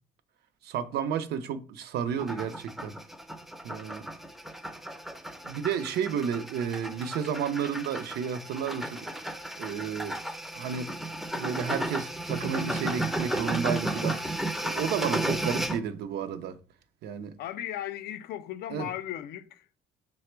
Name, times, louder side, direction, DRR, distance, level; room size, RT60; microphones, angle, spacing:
voice 1, 0.6-2.9 3.6-4.1 5.4-10.2 10.5-10.9 11.3-14.2 14.6-16.6 17.0-17.3 18.7-18.9, right 7 dB, 75° right, 0.5 m, -32 dB
sound 1, 2.2-15.8, right 1 dB, ahead, 0.4 m, -34 dB
voice 2, 17.4-19.6, left 12 dB, 70° left, 0.4 m, -36 dB
5.8 x 2.1 x 4.3 m
cardioid pair, 110°, 17 cm